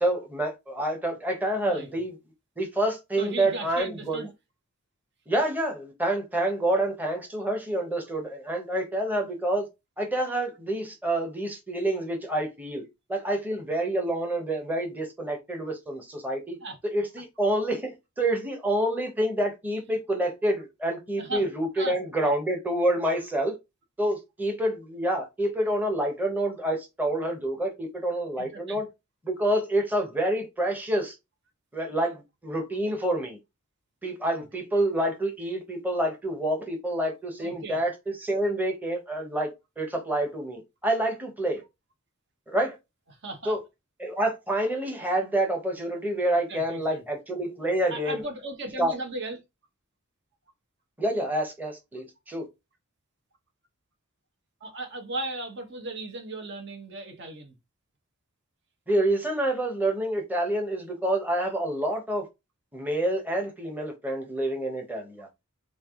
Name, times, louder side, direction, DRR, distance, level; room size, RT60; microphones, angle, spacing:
voice 1, 0.0-2.1 2.6-4.2 5.3-9.7 10.0-12.8 13.1-16.6 16.9-23.6 24.0-28.9 29.2-31.1 31.7-33.4 34.0-41.6 42.5-42.8 43.5-43.6 44.0-48.2 48.8-48.9 51.0-52.5 58.9-62.3 62.7-65.3, right 1 dB, 10° right, 0.9 m, -28 dB
voice 2, 1.6-2.0 3.2-4.3 16.6-16.8 21.2-21.4 21.7-22.0 22.2-22.3 28.4-28.8 37.4-37.8 43.1-43.6 46.5-47.0 47.9-49.4 54.6-57.5, right 2 dB, 55° right, 0.9 m, -36 dB
3.3 x 2.5 x 3.6 m
head